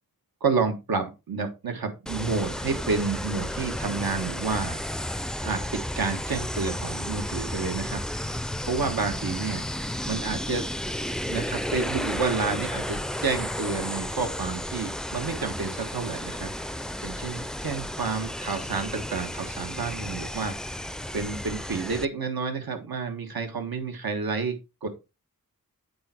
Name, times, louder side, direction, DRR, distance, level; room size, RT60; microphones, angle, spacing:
voice 1, 0.4-4.8 5.4-8.0 8.4-9.6 10.1-10.7 11.3-16.5 17.0-20.5 21.1-24.9, right 4 dB, 90° right, 5 dB, 1.5 m, -30 dB
sound 1, 2.1-22.1, left 1 dB, ahead, 0.4 m, -33 dB
8.6 x 4.6 x 4.4 m, 0.27 s
wide cardioid pair, 60°, 35 cm